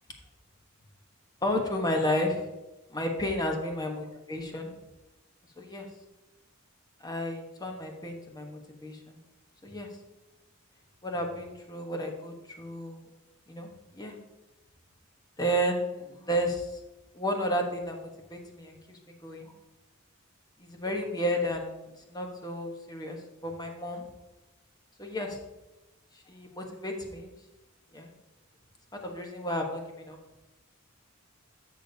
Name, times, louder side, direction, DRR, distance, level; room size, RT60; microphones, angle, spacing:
voice 1, 1.4-2.4 2.9-4.7 5.6-5.9 7.0-9.2 9.6-9.9 11.0-13.0 13.5-13.7 13.9-14.1 15.4-16.8 17.1-19.5 20.6-23.2 23.4-24.0 25.0-25.4 26.3-27.3 27.9-28.1 29.0-30.2, equal, 20° left, 2 dB, 1.2 m, -32 dB
12.5 x 6.7 x 2.8 m, 1.0 s
head